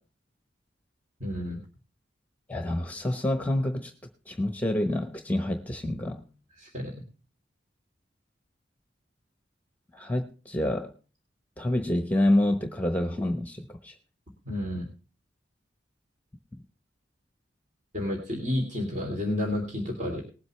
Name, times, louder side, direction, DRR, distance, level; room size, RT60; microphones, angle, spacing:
voice 1, 1.2-1.6 6.6-6.9 14.4-14.9 17.9-20.2, left 1 dB, 45° right, 3.2 m, -30 dB
voice 2, 2.5-3.9 4.3-6.3 9.9-10.9 11.6-14.0, left 1 dB, 10° left, 1.0 m, -27 dB
20.0 x 7.9 x 3.3 m
head